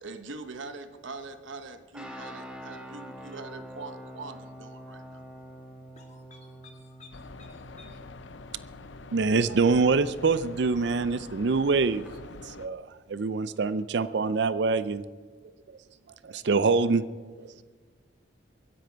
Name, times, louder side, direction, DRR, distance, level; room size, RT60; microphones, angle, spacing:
voice 1, 0.0-5.2, right 3 dB, 80° right, 9 dB, 1.1 m, -42 dB
sound 1, 1.9-12.1, equal, 5° right, 1.7 m, -47 dB
voice 2, 5.9-8.1, left 4 dB, 35° left, 1 dB, 2.5 m, -55 dB
sound 2, 7.1-12.7, left 3 dB, 75° left, 0.6 m, -46 dB
voice 3, 9.1-12.1 12.4-15.0 16.2-17.0 17.4-17.5, right 4 dB, 60° right, 14 dB, 0.4 m, -25 dB
23.5 x 10.0 x 4.6 m, 1.5 s
head